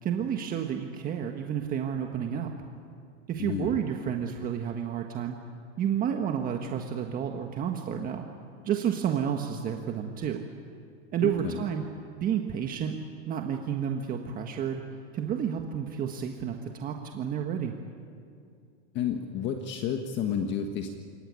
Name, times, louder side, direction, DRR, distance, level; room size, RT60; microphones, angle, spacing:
voice 1, 0.0-2.5 3.3-5.4 5.8-8.3 8.6-10.4 11.1-11.8 12.2-13.0 13.3-17.7, right 8 dB, 25° right, 3 dB, 1.6 m, -30 dB
voice 2, 3.4-3.8 11.2-11.6 18.9-20.9, left 7 dB, 35° left, 5 dB, 1.6 m, -31 dB
30.0 x 18.5 x 9.8 m, 2.4 s
supercardioid pair, 145°, 34 cm